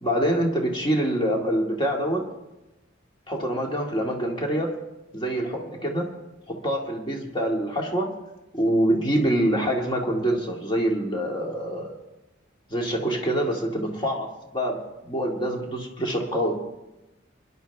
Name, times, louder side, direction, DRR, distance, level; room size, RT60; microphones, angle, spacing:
voice 1, 0.0-2.3 3.3-4.7 5.1-6.1 6.5-8.1 8.5-11.9 12.7-14.3 14.5-16.5, right 1 dB, 25° left, 0 dB, 2.1 m, -25 dB
23.5 x 11.0 x 3.5 m, 1.0 s
head